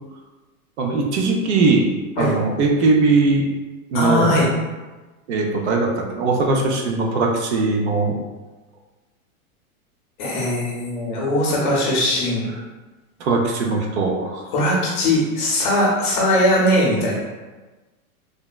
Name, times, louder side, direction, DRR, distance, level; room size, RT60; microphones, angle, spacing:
voice 1, 0.8-1.9 2.2-3.5 3.9-4.4 5.3-8.2 13.2-14.4, right 3 dB, 50° right, 1 dB, 0.5 m, -20 dB
voice 2, 3.9-4.5 10.2-12.5 14.5-17.2, left 1 dB, 35° left, -4 dB, 0.6 m, -20 dB
3.3 x 2.0 x 2.2 m, 1.2 s
supercardioid pair, 165°, 45 cm